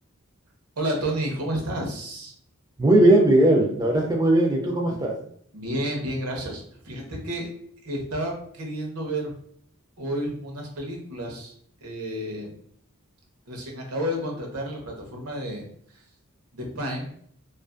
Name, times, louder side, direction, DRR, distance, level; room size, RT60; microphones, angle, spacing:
voice 1, 0.8-2.3 5.5-7.5 7.8-9.3 10.0-11.5 11.8-12.5 13.5-15.6 16.5-17.1, right 1 dB, 85° right, 0 dB, 0.8 m, -31 dB
voice 2, 2.8-5.1, right 1 dB, 15° right, 0 dB, 0.3 m, -18 dB
2.4 x 2.4 x 2.4 m, 0.63 s
head